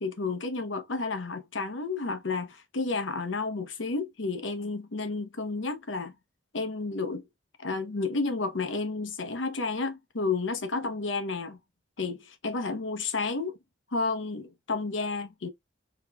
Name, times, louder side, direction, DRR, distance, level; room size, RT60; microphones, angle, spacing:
voice 1, 0.0-6.1 6.5-7.3 7.6-11.6 12.0-13.6 13.9-15.5, left 3 dB, 90° left, 0.9 m, -31 dB
4.8 x 3.1 x 2.3 m
head